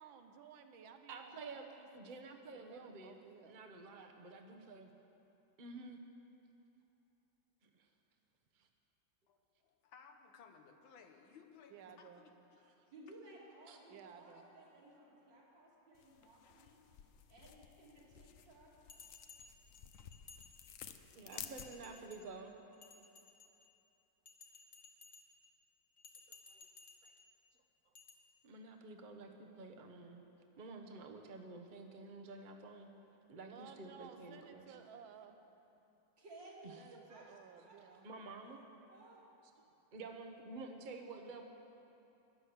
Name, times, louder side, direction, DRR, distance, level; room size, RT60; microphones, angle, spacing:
voice 1, 0.0-2.1 2.5-3.6 11.7-12.3 13.9-14.5 33.4-35.4 36.8-38.1, right 7 dB, 90° right, 7 dB, 1.7 m, -57 dB
voice 2, 1.1-1.6 1.9-3.2 3.5-4.9 5.6-6.0 7.6-7.9 8.6-8.7 13.7-13.8 21.1-22.5 26.3-26.4 27.0-27.1 28.4-30.2 30.6-32.9 33.3-34.7 36.6-36.7 38.0-38.6 39.9-41.4, right 3 dB, 35° right, 3 dB, 0.9 m, -50 dB
voice 3, 9.3-12.6, left 6 dB, 90° left, 5 dB, 1.9 m, -60 dB
voice 4, 12.9-16.8 17.3-18.8 21.1-22.2 36.2-36.8 37.1-37.3 37.6-38.0 38.4-38.6 38.9-39.3 39.5-39.6, right 1 dB, 70° right, -4 dB, 3.3 m, -58 dB
sound 1, 15.9-22.1, left 9 dB, 65° left, 0.8 m, -54 dB
Bell, 18.9-20.9 21.3-22.3 22.7-23.8 24.3-25.5 26.0-27.3 27.9-28.1, left 4 dB, 40° left, 1.4 m, -58 dB
13.0 x 11.0 x 8.0 m, 2.9 s
omnidirectional pair, 2.1 m